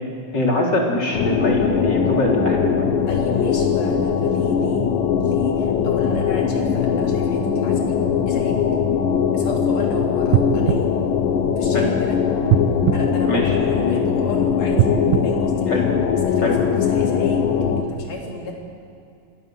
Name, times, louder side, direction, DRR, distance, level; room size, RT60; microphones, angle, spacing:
voice 1, 0.3-3.0 11.7-11.9 13.2-13.5 15.7-15.9 16.4-16.5, left 1 dB, 30° left, -1 dB, 4.1 m, -22 dB
sound 1, 1.1-17.8, left 7 dB, 80° left, 2.9 m, -20 dB
voice 2, 3.1-4.9 5.2-8.0 8.3-8.6 9.3-10.9 11.6-12.2 12.9-14.9 15.2-15.7 16.3-17.4 17.8-18.5, left 2 dB, 50° left, -1 dB, 4.5 m, -33 dB
sound 2, 10.3-11.9 12.5-14.0 14.7-16.4 16.9-17.0, right 11 dB, 80° right, 2.3 m, -23 dB
25.5 x 18.0 x 7.8 m, 2.6 s
omnidirectional pair, 3.9 m